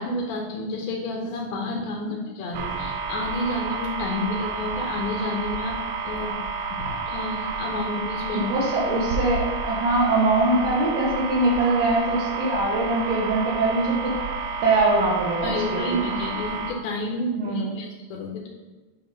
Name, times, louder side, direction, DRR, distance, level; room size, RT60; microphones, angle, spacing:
voice 1, 0.0-5.8 6.0-6.4 6.7-8.5 15.4-18.5, left 2 dB, 80° left, 0 dB, 1.6 m, -30 dB
sound 1, 2.5-16.7, right 4 dB, 90° right, 2.4 m, -30 dB
voice 2, 8.3-14.2 14.6-16.0 17.4-17.8, right 2 dB, 70° right, -6 dB, 2.3 m, -23 dB
7.3 x 2.6 x 5.1 m, 1.3 s
omnidirectional pair, 4.1 m